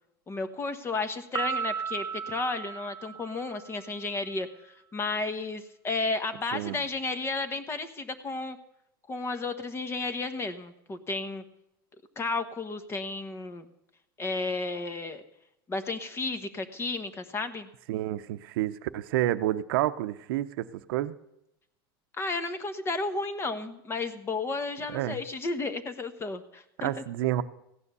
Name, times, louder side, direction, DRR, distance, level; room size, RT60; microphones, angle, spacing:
voice 1, 0.3-8.6 9.1-11.4 12.2-13.7 14.2-15.2 15.7-17.7 22.2-27.0, left 3 dB, 20° left, 10 dB, 1.2 m, -33 dB
Piano, 1.3-3.9, right 7 dB, 25° right, 0.8 m, -35 dB
voice 2, 17.9-21.1 24.9-25.2 26.8-27.4, right 14 dB, 75° right, 12 dB, 0.8 m, -29 dB
16.0 x 9.8 x 6.8 m, 0.82 s
supercardioid pair, 135°, 12 cm